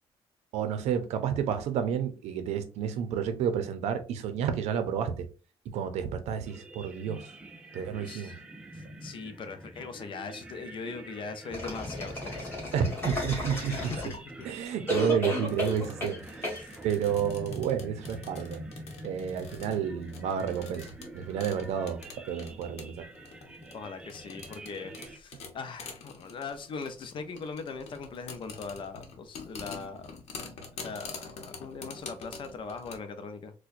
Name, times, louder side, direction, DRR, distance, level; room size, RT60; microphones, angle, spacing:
voice 1, 0.5-5.3 5.7-7.3 7.7-8.3 12.7-13.9 14.4-16.5 16.8-18.6 19.0-22.0 22.3-23.1, right 8 dB, 90° right, 0.6 m, -30 dB
sound 1, 6.5-25.2, right 1 dB, 10° right, 0.4 m, -46 dB
voice 2, 8.0-8.3 8.7-12.7 13.7-14.2 16.6-16.7 23.7-30.2 30.8-33.5, left 4 dB, 50° left, 0.6 m, -40 dB
sound 2, 11.5-14.4 14.9-16.2 16.4-16.6, left 1 dB, 20° left, 1.9 m, -33 dB
sound 3, 15.4-33.0, left 4 dB, 75° left, 0.9 m, -46 dB
4.3 x 2.2 x 2.5 m
cardioid pair, 115°, 11 cm